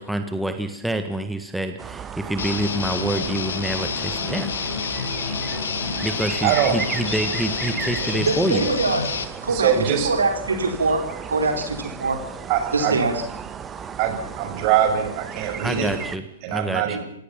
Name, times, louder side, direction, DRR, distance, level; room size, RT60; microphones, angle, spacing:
voice 1, 0.0-4.6 6.0-8.7 15.6-16.2 16.5-17.0, right 1 dB, 5° right, 7 dB, 1.6 m, -27 dB
sound 1, 1.8-16.2, right 7 dB, 20° right, 1.5 m, -35 dB
Guitar, 2.4-9.2, left 6 dB, 65° left, 2.5 m, -28 dB
voice 2, 6.4-6.8 9.5-10.1 12.5-13.0 14.0-15.9 16.4-17.0, right 9 dB, 40° right, 5 dB, 6.6 m, -22 dB
voice 3, 8.1-9.0 9.4-11.0 11.3-12.2 12.7-13.2, right 3 dB, 75° right, 4 dB, 4.2 m, -23 dB
27.0 x 19.0 x 5.9 m, 0.76 s
figure-of-eight pair, 110°, 0 cm